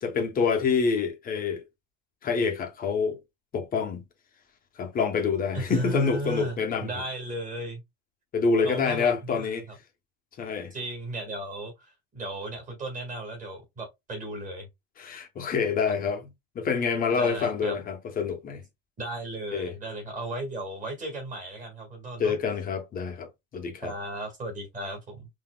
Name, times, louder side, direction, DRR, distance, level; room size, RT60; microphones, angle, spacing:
voice 1, 0.0-1.6 2.2-3.2 3.5-4.0 4.8-6.9 8.3-9.6 10.4-10.7 15.0-16.3 16.5-18.6 19.5-19.7 22.2-23.9, left 5 dB, 20° left, 0.9 m, -27 dB
voice 2, 5.5-7.8 8.6-9.5 10.7-14.7 15.8-16.0 17.1-17.8 19.0-22.4 23.8-25.3, right 1 dB, 20° right, 1.8 m, -35 dB
5.7 x 2.9 x 2.2 m
supercardioid pair, 160°, 41 cm